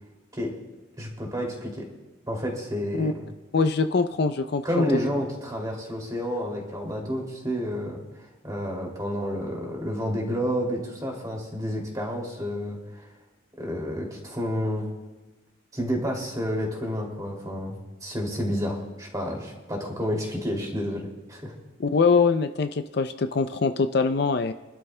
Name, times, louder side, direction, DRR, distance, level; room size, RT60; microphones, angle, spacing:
voice 1, 1.0-1.8 2.3-3.3 4.6-8.0 8.4-13.1 13.6-14.8 15.7-21.5, equal, 20° right, -1 dB, 2.5 m, -30 dB
voice 2, 3.5-4.6 21.8-24.5, left 4 dB, 55° left, 9 dB, 0.4 m, -23 dB
25.5 x 12.0 x 2.2 m, 1.2 s
head